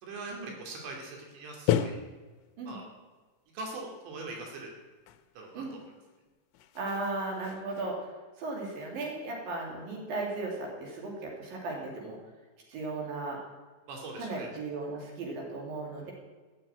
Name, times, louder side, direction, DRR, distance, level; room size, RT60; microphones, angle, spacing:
voice 1, 0.0-2.0 2.7-2.8 3.5-4.7 5.4-5.6 13.9-14.5, right 2 dB, 90° right, 0 dB, 4.7 m, -41 dB
sound 1, 1.0-1.1 1.7-2.9 4.5-4.7 5.1-6.2 6.5-8.0, left 10 dB, 80° left, 2.6 m, -34 dB
voice 2, 6.8-8.1 8.4-12.2 12.7-13.4 14.2-16.1, right 3 dB, 60° right, -1 dB, 4.5 m, -36 dB
15.5 x 7.2 x 9.0 m, 1.3 s
omnidirectional pair, 4.9 m